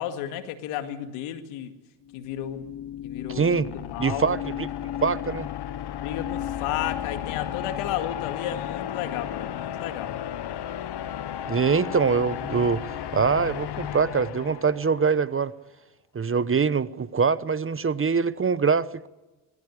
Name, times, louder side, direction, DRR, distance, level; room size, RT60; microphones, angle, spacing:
voice 1, 0.0-1.7 2.1-2.7 3.0-4.3 5.9-10.1, left 11 dB, 85° left, 2.2 m, -33 dB
sound 1, 2.1-15.2, left 11 dB, 55° left, 1.2 m, -34 dB
voice 2, 3.3-3.7 4.0-4.7 5.0-5.5 11.5-15.5 16.1-19.1, right 5 dB, 25° right, 0.9 m, -24 dB
22.0 x 14.5 x 9.9 m
supercardioid pair, 75°, 49 cm